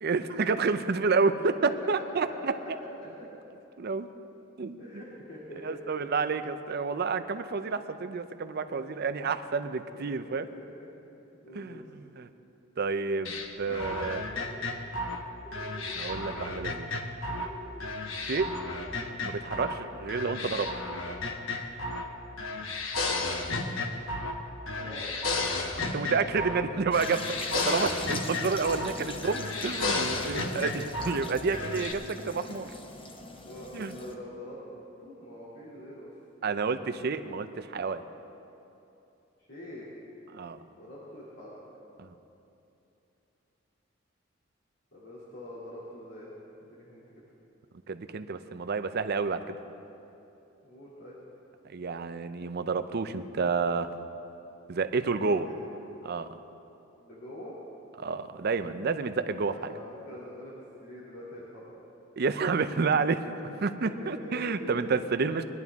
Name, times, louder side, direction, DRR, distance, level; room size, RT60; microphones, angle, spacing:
voice 1, 0.0-2.5 3.8-4.1 4.6-4.8 5.6-10.5 11.6-11.8 12.2-12.3 12.8-14.3 15.9-16.9 18.2-18.5 19.2-20.7 25.9-27.2 27.5-30.8 31.0-32.7 33.7-33.9 36.4-38.0 40.3-40.6 42.0-42.1 47.9-49.6 51.7-53.9 54.7-55.5 56.1-56.3 58.0-59.5 62.2-65.4, right 4 dB, 55° right, 10 dB, 0.6 m, -29 dB
voice 2, 4.8-5.9 8.7-8.8 10.1-10.9 11.4-11.8 23.1-23.5 24.8-25.1 27.6-28.7 30.2-30.6 33.4-34.6 35.0-36.1 39.4-39.9 40.7-41.6 44.9-46.3 46.7-47.2 50.6-51.2 55.2-55.8 57.0-57.5 59.4-60.5 60.8-61.7 63.4-63.5 63.8-64.9, left 1 dB, 65° left, -9 dB, 2.7 m, -44 dB
sound 1, 13.3-17.5 17.8-19.8 20.1-22.1 22.4-24.4 24.7-26.7 26.9-29.0 29.2-31.2 31.5-31.9, left 3 dB, 85° left, 1.0 m, -33 dB
sound 2, 14.2-14.7 15.4-16.7 17.3-17.8 18.3-18.8, right 1 dB, 5° left, 2.4 m, -48 dB
sound 3, 26.9-34.2, left 2 dB, 25° left, 1.0 m, -42 dB
21.0 x 11.0 x 3.6 m, 2.9 s
head